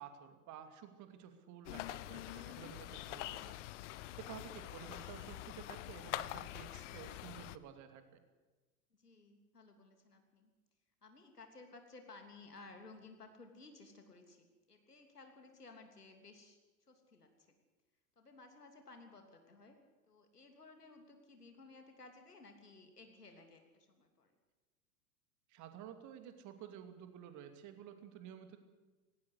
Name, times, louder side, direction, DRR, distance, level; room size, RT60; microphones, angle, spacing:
voice 1, 0.0-3.6 3.9-8.2 25.5-28.6, right 9 dB, 40° right, 8 dB, 2.6 m, -52 dB
sound 1, 1.6-7.6, left 16 dB, 50° left, 0.9 m, -45 dB
voice 2, 8.9-10.5 11.0-17.5 18.1-19.8 20.1-24.3, left 3 dB, 85° left, 5 dB, 3.2 m, -57 dB
18.5 x 17.5 x 8.1 m, 1.2 s
figure-of-eight pair, 85°, 45 cm